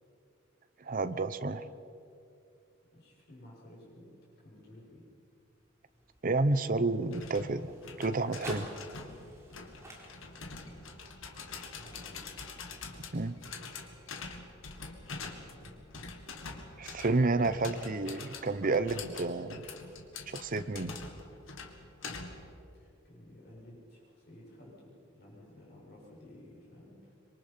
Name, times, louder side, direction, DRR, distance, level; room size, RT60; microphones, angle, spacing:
voice 1, 0.8-1.6 6.2-7.7 8.0-8.7 13.1-13.4 16.8-19.7 20.3-21.0, right 3 dB, 45° right, 12 dB, 0.8 m, -30 dB
voice 2, 2.9-4.1 4.4-5.1 10.3-10.9 11.7-12.2 15.2-15.8 22.7-27.1, left 1 dB, 55° left, -4 dB, 7.4 m, -54 dB
sound 1, 5.4-13.7, right 1 dB, 15° right, 3.9 m, -53 dB
sound 2, 7.1-22.5, left 4 dB, 80° left, 2.0 m, -45 dB
25.5 x 23.0 x 5.8 m, 2.6 s
head